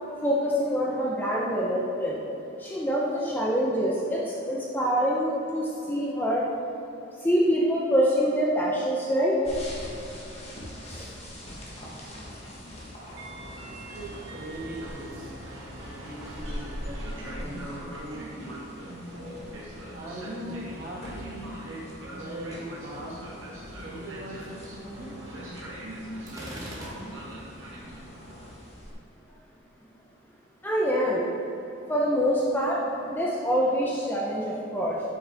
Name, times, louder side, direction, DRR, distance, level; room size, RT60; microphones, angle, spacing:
voice 1, 0.2-2.2 2.6-6.5 7.2-9.4 10.9-11.1 30.6-31.3 31.9-35.0, equal, 10° left, -5 dB, 0.6 m, -25 dB
sound 1, 9.4-28.9, equal, 30° left, 1.2 m, -44 dB
Train, 13.0-28.5, right 1 dB, 70° right, 1.4 m, -42 dB
voice 2, 13.9-15.4 15.8-17.0 17.3-18.6 19.9-21.8 22.1-23.3 23.8-25.1, right 1 dB, 40° right, -6 dB, 1.7 m, -40 dB
Gunshot gunfire, 26.3-27.5, equal, 15° right, 1.0 m, -41 dB
8.1 x 6.2 x 3.4 m, 2.8 s
head